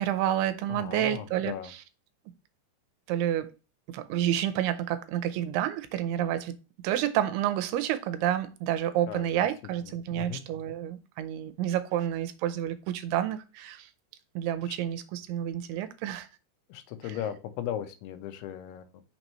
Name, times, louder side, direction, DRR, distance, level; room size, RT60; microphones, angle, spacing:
voice 1, 0.0-1.8 3.1-3.5 3.9-6.6 6.8-13.9 14.4-16.3 17.0-17.1, right 11 dB, 90° right, 2.6 m, -29 dB
voice 2, 0.7-1.7 9.1-9.3 10.1-10.4 14.7-14.8 16.7-19.0, left 10 dB, 85° left, 2.8 m, -37 dB
6.3 x 3.0 x 5.3 m
omnidirectional pair, 4.6 m